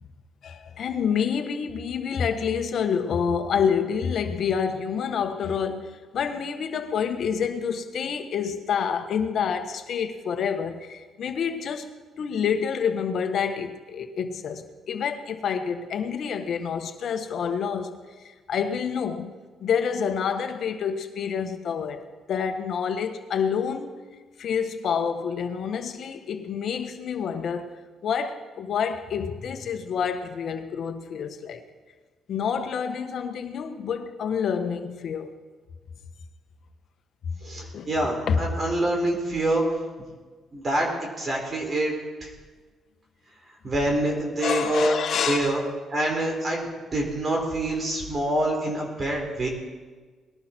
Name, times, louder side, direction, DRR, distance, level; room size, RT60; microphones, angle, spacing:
voice 1, 0.4-11.9 12.2-19.3 19.6-23.9 24.4-27.7 28.0-31.6 32.3-35.3 37.2-37.9 38.3-38.4 44.4-45.7, left 7 dB, 65° left, 1.4 m, -28 dB
voice 2, 37.4-39.7 40.5-41.9 42.2-42.3 43.6-45.0 45.3-45.6 45.9-49.5, right 1 dB, 40° right, 4.0 m, -26 dB
20.0 x 11.5 x 4.5 m
cardioid pair, 90°, 0 cm